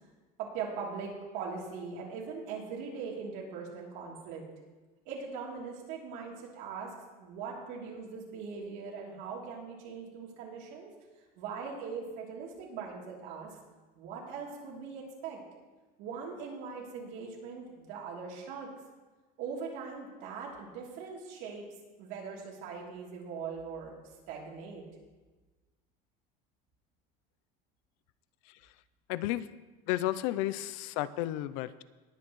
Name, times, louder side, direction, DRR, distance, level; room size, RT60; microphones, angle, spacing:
voice 1, 0.4-4.4 5.0-10.9 11.4-13.5 13.9-15.4 16.0-18.7 19.4-21.6 22.0-24.0 24.3-24.8, right 5 dB, 70° right, -3 dB, 3.2 m, -41 dB
voice 2, 29.1-29.5 29.9-31.8, left 14 dB, 90° left, 16 dB, 0.5 m, -32 dB
20.0 x 8.6 x 3.1 m, 1.2 s
cardioid pair, 160°, 18 cm